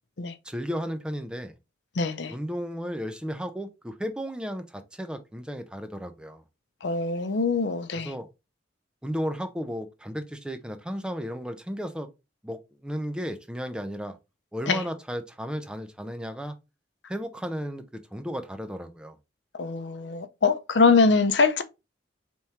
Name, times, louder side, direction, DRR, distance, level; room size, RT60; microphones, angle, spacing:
voice 1, 0.4-1.5 2.3-6.4 8.0-8.3 9.0-12.1 12.4-14.2 14.5-16.5 17.1-17.8 18.1-19.2, equal, 5° right, 0.4 m, -34 dB
voice 2, 2.0-2.3 6.8-8.1 14.7-14.8 19.6-21.6, left 4 dB, 70° left, 0.6 m, -23 dB
4.4 x 3.5 x 2.8 m
head